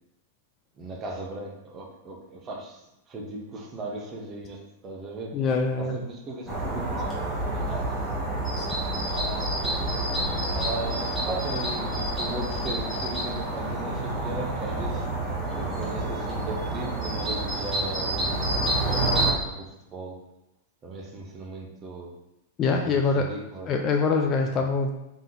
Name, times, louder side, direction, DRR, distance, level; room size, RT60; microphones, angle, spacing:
voice 1, 0.8-2.8 3.1-5.4 5.8-8.0 8.3-8.6 9.1-9.7 10.4-15.1 15.6-20.2 20.8-22.1 22.8-23.7, right 2 dB, 20° right, 0 dB, 0.7 m, -37 dB
voice 2, 5.3-6.0 8.6-8.7 22.6-23.3 23.7-24.9, left 4 dB, 25° left, 3 dB, 0.3 m, -24 dB
sound 1, 6.5-19.3, right 1 dB, 5° right, 1.2 m, -28 dB
3.7 x 2.8 x 3.8 m, 0.88 s
supercardioid pair, 155°, 0 cm